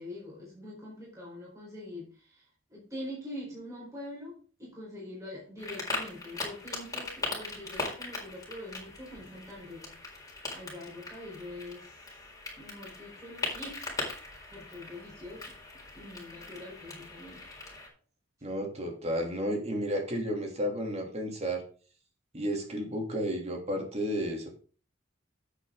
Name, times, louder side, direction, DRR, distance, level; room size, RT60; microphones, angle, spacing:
voice 1, 0.0-2.4 2.7-10.1 10.5-12.0 12.6-13.9 14.5-15.5 15.9-17.5, left 1 dB, 15° right, -5 dB, 4.6 m, -44 dB
sound 1, 5.6-17.9, left 2 dB, 20° left, 4.7 m, -40 dB
voice 2, 18.4-21.6 22.3-24.5, equal, 35° right, 2 dB, 3.0 m, -32 dB
10.0 x 8.6 x 3.9 m, 0.39 s
head